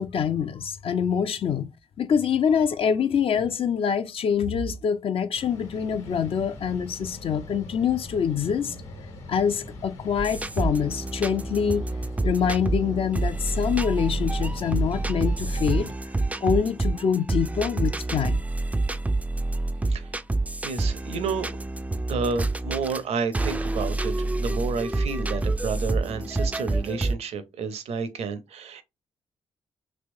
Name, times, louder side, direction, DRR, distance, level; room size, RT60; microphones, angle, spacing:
voice 1, 0.0-1.7 2.0-8.8 9.3-11.9 12.2-15.9 16.4-18.4, left 7 dB, 50° left, 0.5 m, -25 dB
sound 1, 5.3-15.9, left 1 dB, 65° left, 1.3 m, -41 dB
sound 2, 10.2-23.0 23.3-27.1, right 2 dB, 10° right, 0.4 m, -27 dB
voice 2, 20.6-21.5 22.0-28.8, right 5 dB, 60° right, 0.6 m, -30 dB
3.3 x 2.9 x 2.6 m
hypercardioid pair, 40°, 12 cm